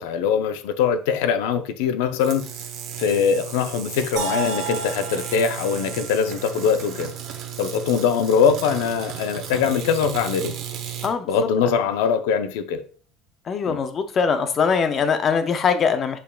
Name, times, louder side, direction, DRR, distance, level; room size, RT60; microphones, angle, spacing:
voice 1, 0.0-2.5 3.0-7.1 7.6-10.6 11.3-12.8 13.7-13.8, left 6 dB, 80° left, 0.5 m, -22 dB
sound 1, 2.1-11.1, right 9 dB, 45° right, 0.7 m, -34 dB
sound 2, 4.2-8.1, right 4 dB, 65° right, 1.4 m, -33 dB
voice 2, 13.5-16.2, left 6 dB, 25° left, 0.4 m, -22 dB
6.7 x 3.5 x 2.2 m
cardioid pair, 180°, 0 cm